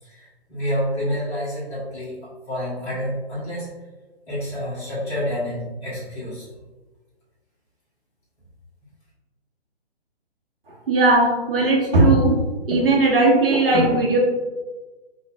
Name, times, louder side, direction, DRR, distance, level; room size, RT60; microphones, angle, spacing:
voice 1, 0.0-2.1 2.5-3.7 4.3-6.5, equal, 10° left, -11 dB, 0.9 m, -28 dB
voice 2, 10.9-12.4 12.7-14.2, right 2 dB, 60° right, -1 dB, 1.1 m, -17 dB
5.3 x 2.5 x 2.4 m, 1.2 s
figure-of-eight pair, 135°, 32 cm